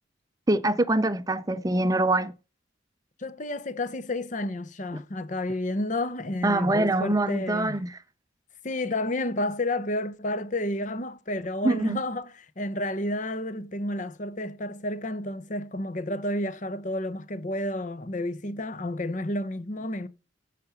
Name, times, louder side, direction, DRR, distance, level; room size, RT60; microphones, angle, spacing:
voice 1, 0.5-2.3 4.9-5.0 6.4-8.0 11.6-12.0, right 2 dB, 20° right, 0.5 m, -24 dB
voice 2, 3.2-7.8 8.6-20.1, left 1 dB, 40° left, 0.8 m, -31 dB
14.5 x 5.0 x 5.7 m
head